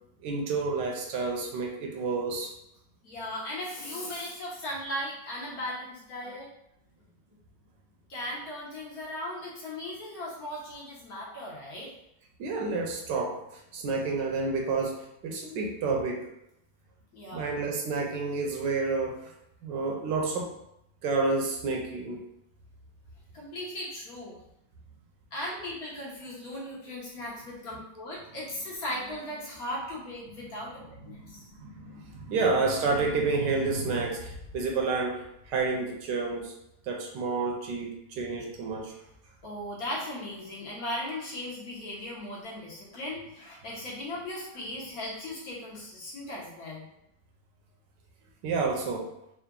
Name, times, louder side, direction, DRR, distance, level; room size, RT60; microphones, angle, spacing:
voice 1, 0.2-2.5 12.4-16.2 17.3-19.3 19.6-20.5 21.0-22.2 31.0-36.5 36.8-38.9 48.4-49.1, right 3 dB, 75° right, 0 dB, 1.2 m, -30 dB
voice 2, 3.0-6.5 8.1-11.9 17.1-17.5 23.3-24.3 25.3-31.5 39.4-46.8, left 1 dB, 55° left, -5 dB, 1.2 m, -37 dB
3.8 x 2.4 x 3.6 m, 0.82 s
omnidirectional pair, 2.0 m